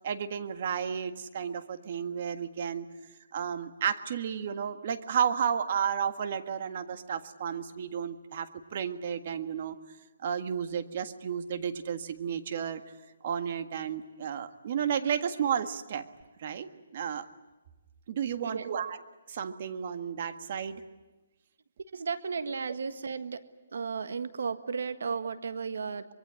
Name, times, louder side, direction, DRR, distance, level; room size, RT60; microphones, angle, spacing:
voice 1, 0.0-2.9 3.3-9.8 10.2-12.8 13.2-16.0 16.4-17.3 18.1-19.0 19.3-20.8, right 8 dB, 45° right, 10 dB, 1.7 m, -32 dB
voice 2, 18.4-18.7 21.9-23.4 23.7-26.1, right 5 dB, 75° right, 11 dB, 1.6 m, -34 dB
24.5 x 22.5 x 9.8 m, 1.1 s
hypercardioid pair, 160°, 0 cm